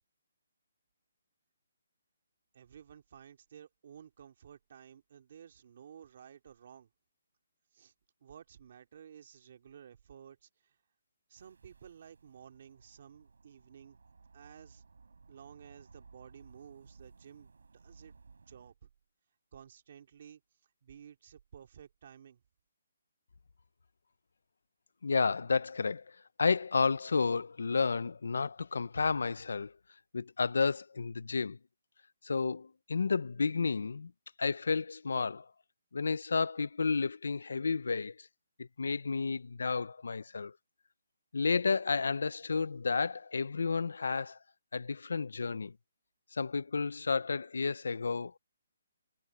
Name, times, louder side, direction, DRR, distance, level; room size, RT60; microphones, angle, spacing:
voice 1, 2.5-6.9 7.7-7.9 8.2-10.8 11.3-14.0 14.3-14.8 15.3-18.2 18.5-18.9 19.5-20.4 20.8-22.4, right 8 dB, 35° right, 2.9 m, -54 dB
sound 1, 11.3-18.7, right 4 dB, 90° right, 5.9 m, -59 dB
voice 2, 25.0-26.0 26.4-29.7 30.1-31.6 32.2-34.1 34.4-35.5 35.9-38.3 38.6-40.5 41.3-44.4 44.7-45.7 46.3-48.4, left 4 dB, 70° left, 0.5 m, -31 dB
hypercardioid pair, 180°, 0 cm